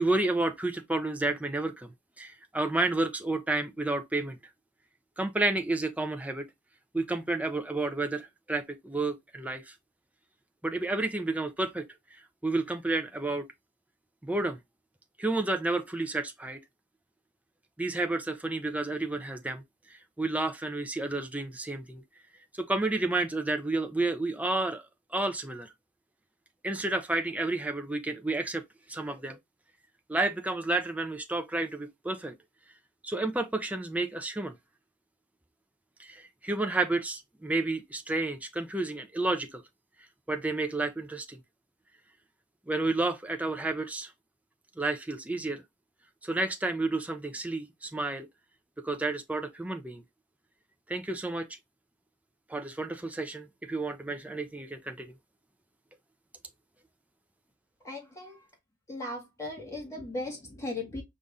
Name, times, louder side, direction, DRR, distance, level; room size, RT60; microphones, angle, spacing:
voice 1, 0.0-4.4 5.2-6.4 6.9-9.7 10.6-11.9 12.1-13.5 14.2-14.6 15.2-16.6 17.8-19.6 19.9-22.0 22.5-24.8 25.1-25.7 26.6-28.6 28.9-29.4 30.1-32.3 33.0-34.5 36.0-39.6 40.3-41.4 42.7-44.1 44.8-45.6 46.2-48.3 48.8-50.0 50.9-51.5 52.5-55.1, right 2 dB, 5° right, 0.5 m, -31 dB
voice 2, 57.8-58.5 58.9-61.0, left 2 dB, 15° left, 1.8 m, -37 dB
5.3 x 2.6 x 3.5 m
head